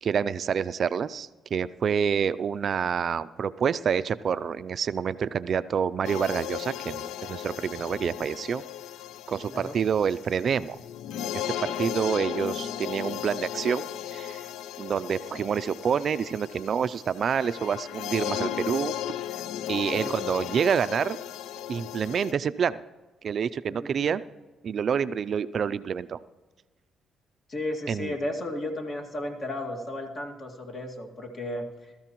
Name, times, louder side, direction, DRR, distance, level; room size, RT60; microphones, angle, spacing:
voice 1, 0.0-8.6 9.3-10.8 11.2-14.4 14.8-19.0 19.7-21.2 21.7-22.8 23.2-24.2 24.6-26.2 27.9-28.1, right 7 dB, 55° right, 14 dB, 0.4 m, -27 dB
sound 1, 6.0-22.3, left 11 dB, 85° left, 0.3 m, -36 dB
voice 2, 23.7-24.1 27.5-31.7, left 1 dB, 45° left, 2 dB, 2.1 m, -34 dB
20.0 x 13.5 x 3.0 m, 1.2 s
cardioid pair, 90°, 0 cm